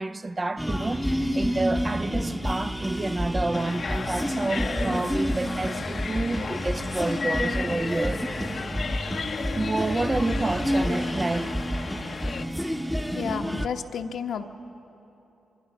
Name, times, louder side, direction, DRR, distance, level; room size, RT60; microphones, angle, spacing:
voice 1, 0.0-8.2 8.5-8.7 9.5-11.6, right 2 dB, 30° right, 0.6 m, -29 dB
sound 1, 0.6-13.7, equal, ahead, 1.0 m, -29 dB
sound 2, 3.5-12.5, left 5 dB, 55° left, 0.8 m, -34 dB
voice 2, 13.1-14.4, left 7 dB, 75° left, 1.1 m, -31 dB
25.5 x 24.5 x 6.1 m
cardioid pair, 70°, 0 cm